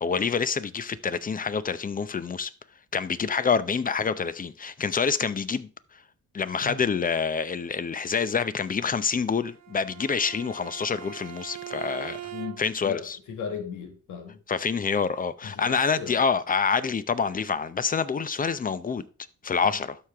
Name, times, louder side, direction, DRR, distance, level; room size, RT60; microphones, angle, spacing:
voice 1, 0.0-2.5 2.9-5.7 6.3-12.3 12.6-13.2 14.5-19.0 19.4-20.0, left 5 dB, 30° left, 0.7 m, -27 dB
Bowed string instrument, 9.5-12.9, right 13 dB, 65° right, 0.6 m, -41 dB
voice 2, 12.3-14.4 15.4-16.2 19.6-19.8, left 6 dB, 75° left, 1.6 m, -37 dB
12.5 x 5.0 x 3.5 m
cardioid pair, 90°, 30 cm